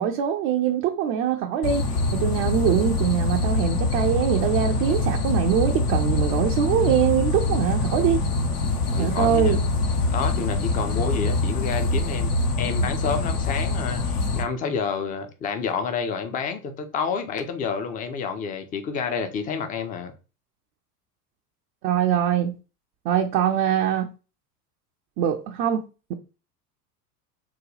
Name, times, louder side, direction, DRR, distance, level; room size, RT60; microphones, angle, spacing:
voice 1, 0.0-1.8 2.1-8.2 9.0-9.6 21.8-22.5 23.0-24.1 25.2-25.8, right 9 dB, 40° right, 0.4 m, -23 dB
sound 1, 1.6-14.4, left 2 dB, 70° left, 0.9 m, -24 dB
voice 2, 8.9-9.6 10.1-20.1, left 5 dB, 20° left, 0.4 m, -29 dB
3.8 x 2.2 x 3.1 m
figure-of-eight pair, 80°, 47 cm